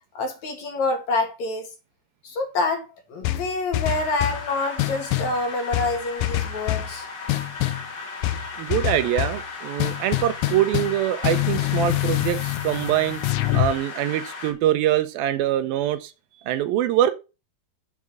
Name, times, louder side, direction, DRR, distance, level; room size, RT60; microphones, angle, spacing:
voice 1, 0.1-1.7 2.2-7.1, left 3 dB, 55° left, 2.9 m, -27 dB
sound 1, 3.2-4.5 4.8-5.4 5.7-6.9 7.3-7.9 8.2-9.4 9.8-13.7, left 16 dB, 75° left, 2.2 m, -25 dB
sound 2, 3.9-14.5, left 4 dB, 35° left, 2.1 m, -36 dB
voice 2, 8.2-13.2 13.5-16.1 16.5-17.1, right 12 dB, 80° right, 2.4 m, -24 dB
7.4 x 5.5 x 7.5 m
omnidirectional pair, 4.4 m